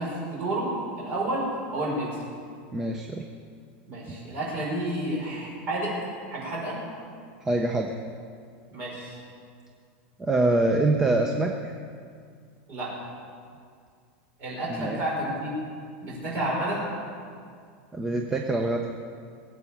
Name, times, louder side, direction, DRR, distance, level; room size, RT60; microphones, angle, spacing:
voice 1, 0.0-2.1 3.9-5.9 6.3-6.8 8.7-9.2 12.7-12.9 14.4-15.5 16.0-16.8, right 1 dB, 25° right, -4 dB, 5.3 m, -30 dB
voice 2, 2.7-3.3 4.1-4.2 7.4-7.9 10.2-11.7 14.7-15.0 17.9-18.9, right 2 dB, 10° right, 3 dB, 0.6 m, -25 dB
22.0 x 8.1 x 7.3 m, 2.2 s
supercardioid pair, 180°, 6 cm